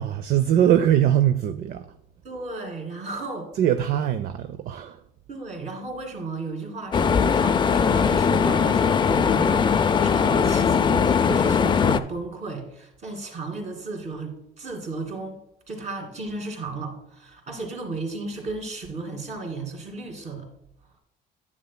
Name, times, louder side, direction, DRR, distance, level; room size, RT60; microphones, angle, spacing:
voice 1, 0.0-1.8 3.6-5.0, right 10 dB, 60° right, 0.5 m, -21 dB
voice 2, 2.2-3.5 5.3-15.4 15.7-20.5, right 3 dB, 45° right, 2.4 m, -34 dB
sound 1, 6.9-12.0, left 6 dB, 30° left, 0.4 m, -20 dB
9.8 x 8.2 x 2.2 m
cardioid pair, 110°, 17 cm